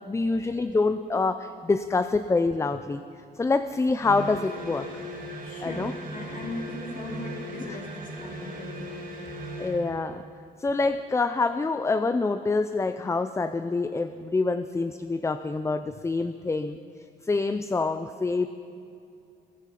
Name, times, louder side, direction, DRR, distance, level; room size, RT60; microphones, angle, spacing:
voice 1, 0.1-3.0 3.4-4.9 5.6-5.9 7.7-7.8 9.6-10.2 10.6-16.8 17.2-18.5, left 3 dB, 15° left, 11 dB, 0.4 m, -26 dB
sound 1, 4.0-9.9, equal, 45° right, 2.8 m, -38 dB
voice 2, 5.4-9.0, left 1 dB, 40° left, -2 dB, 3.0 m, -39 dB
21.5 x 9.0 x 5.8 m, 2.5 s
cardioid pair, 90°, 20 cm